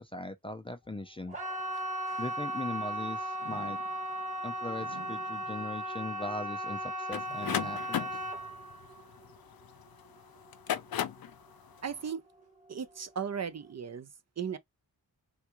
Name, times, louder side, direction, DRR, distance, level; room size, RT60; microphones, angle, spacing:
voice 1, 0.0-1.4 2.2-3.8 4.4-8.2, left 2 dB, 15° left, 0.4 m, -40 dB
sound 1, 1.3-12.1 12.4-13.0 13.4-13.5, right 1 dB, 20° right, 1.2 m, -37 dB
sound 2, 1.3-2.9 3.4-8.6 9.1-9.2 10.1-10.2, right 6 dB, 90° right, 0.9 m, -53 dB
sound 3, 7.1-9.8 10.4-11.3, left 10 dB, 70° left, 0.5 m, -35 dB
voice 2, 11.8-12.2 12.7-14.1 14.4-14.6, right 7 dB, 45° right, 0.5 m, -36 dB
3.5 x 2.3 x 2.9 m
wide cardioid pair, 120°, 37 cm